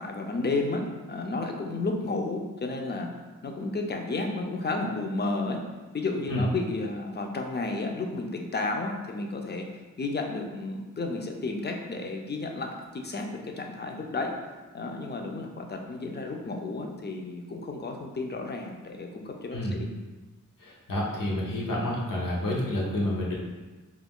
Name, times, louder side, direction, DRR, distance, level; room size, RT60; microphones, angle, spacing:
voice 1, 0.0-3.1 3.4-5.6 5.9-9.7 10.0-14.3 14.7-19.9, left 3 dB, 35° left, 2 dB, 0.4 m, -32 dB
voice 2, 20.6-23.4, left 1 dB, 80° left, -4 dB, 0.7 m, -29 dB
2.4 x 2.2 x 3.5 m, 1.2 s
wide cardioid pair, 55°, 32 cm